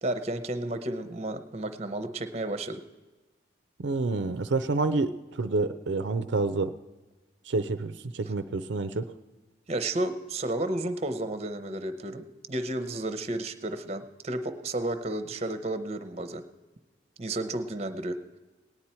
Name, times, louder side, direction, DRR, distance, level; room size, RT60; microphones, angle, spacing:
voice 1, 0.0-2.8 8.3-8.4 9.7-16.4 17.2-18.2, right 1 dB, 35° right, 10 dB, 0.7 m, -32 dB
voice 2, 3.8-6.7 7.5-9.0, right 3 dB, 75° right, 10 dB, 0.5 m, -28 dB
18.5 x 9.6 x 4.4 m, 1.2 s
head